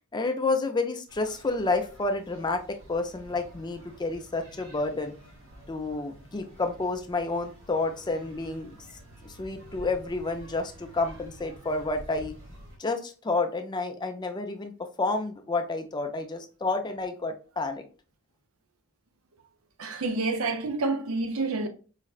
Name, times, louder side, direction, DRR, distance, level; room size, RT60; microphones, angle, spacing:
voice 1, 0.1-5.1 5.7-8.8 9.2-12.4 12.8-14.7 15.0-17.9, left 3 dB, 20° left, 0.4 m, -30 dB
sound 1, 1.1-12.8, equal, 70° right, 1.3 m, -49 dB
voice 2, 19.8-21.7, right 3 dB, 90° right, 0.6 m, -28 dB
4.8 x 2.1 x 2.4 m
head